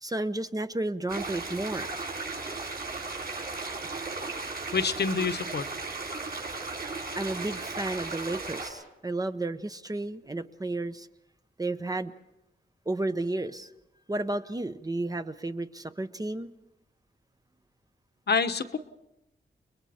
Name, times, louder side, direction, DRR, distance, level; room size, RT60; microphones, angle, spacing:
voice 1, 0.0-1.9 7.1-11.1 11.6-12.1 12.9-13.7 14.1-16.5, right 2 dB, 20° right, 10 dB, 0.8 m, -32 dB
sound 1, 1.1-8.7, right 3 dB, 55° right, 5.4 m, -36 dB
voice 2, 4.7-5.6 18.3-18.8, left 5 dB, 65° left, 9 dB, 1.1 m, -27 dB
29.5 x 22.0 x 4.3 m, 0.91 s
wide cardioid pair, 130°, 19 cm